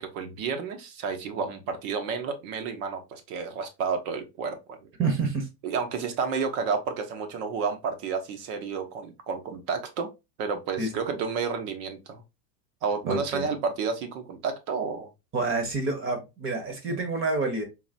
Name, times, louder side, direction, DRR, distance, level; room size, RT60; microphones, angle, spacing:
voice 1, 0.0-4.8 5.6-10.1 10.4-12.2 12.8-15.1, right 5 dB, 55° right, 1.1 m, -31 dB
voice 2, 5.0-5.5 10.8-10.9 13.1-13.5 15.3-17.6, right 3 dB, 25° right, 1.1 m, -28 dB
3.9 x 2.8 x 2.7 m
supercardioid pair, 120°, 49 cm